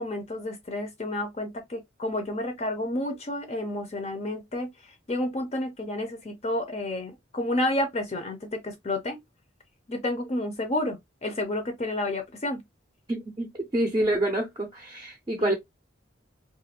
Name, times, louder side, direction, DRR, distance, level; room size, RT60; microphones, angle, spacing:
voice 1, 0.0-9.2 9.9-12.6 15.4-15.5, left 1 dB, 35° left, 0.5 m, -30 dB
voice 2, 13.1-15.5, right 1 dB, 20° right, 0.5 m, -27 dB
2.5 x 2.4 x 2.8 m
head